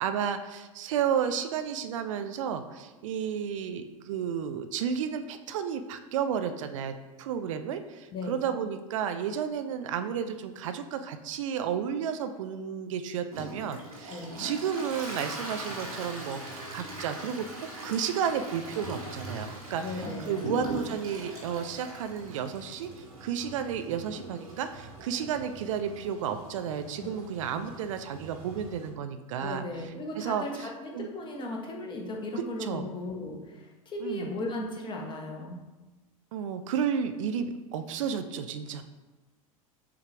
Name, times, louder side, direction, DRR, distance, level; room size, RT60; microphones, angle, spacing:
voice 1, 0.0-29.6 30.2-30.7 30.9-31.1 32.3-32.8 34.0-34.3 36.3-38.8, right 8 dB, 60° right, 8 dB, 0.4 m, -32 dB
Toilet flush, 13.3-28.9, right 1 dB, 80° right, 1.2 m, -41 dB
voice 2, 14.1-14.5 19.8-20.8 27.0-27.1 27.5-27.7 29.4-35.6, left 2 dB, 25° left, 1 dB, 0.9 m, -37 dB
6.7 x 2.4 x 3.3 m, 1.2 s
figure-of-eight pair, 85°, 18 cm